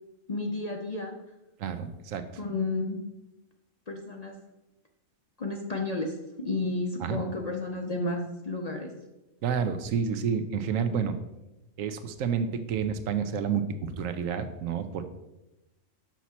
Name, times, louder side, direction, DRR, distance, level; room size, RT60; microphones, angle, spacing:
voice 1, 0.3-1.2 2.4-3.1 3.9-4.4 5.4-8.9, left 2 dB, 40° left, 1 dB, 0.6 m, -32 dB
voice 2, 1.6-2.2 7.0-7.2 9.4-11.2 11.8-15.0, right 7 dB, 75° right, 10 dB, 1.0 m, -29 dB
6.0 x 5.9 x 4.2 m, 0.96 s
omnidirectional pair, 1.4 m